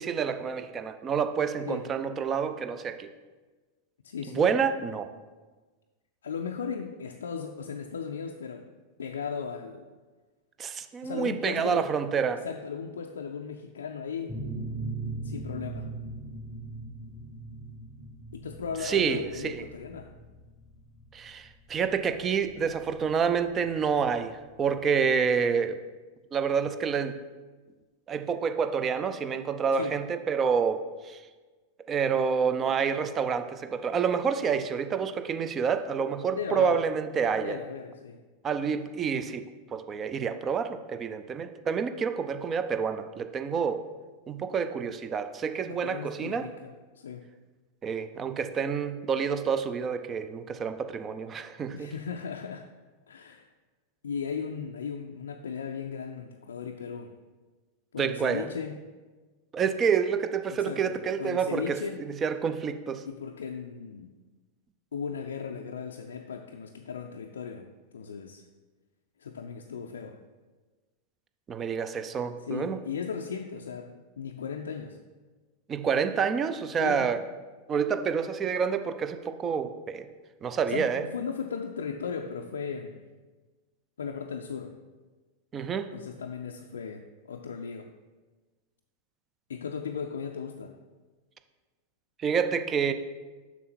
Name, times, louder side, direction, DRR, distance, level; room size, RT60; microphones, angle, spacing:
voice 1, 0.0-3.1 4.3-5.1 10.6-12.4 18.8-19.6 21.1-25.8 26.3-27.2 28.1-31.2 31.9-37.6 38.4-43.8 44.3-46.5 47.8-51.9 58.0-58.5 59.5-61.8 62.2-63.0 71.5-72.8 75.7-77.2 77.7-80.1 80.4-81.0 85.5-85.9 92.2-92.9, right 6 dB, 25° right, 10 dB, 0.5 m, -28 dB
voice 2, 4.0-4.5 6.2-8.7 9.0-9.9 11.0-11.9 12.3-14.3 15.2-15.9 18.3-20.1 29.8-30.0 36.3-36.8 37.4-38.2 45.8-47.3 51.7-52.7 53.1-53.5 54.0-57.1 57.9-58.8 60.5-62.0 63.1-64.1 64.9-68.4 69.2-70.2 72.4-75.0 76.8-77.1 80.7-83.0 84.0-84.7 85.9-87.9 89.5-90.8, left 6 dB, 65° left, 2 dB, 0.4 m, -36 dB
sound 1, 14.3-23.7, right 2 dB, ahead, 1.0 m, -39 dB
7.1 x 6.0 x 4.3 m, 1.3 s
figure-of-eight pair, 90°, 0 cm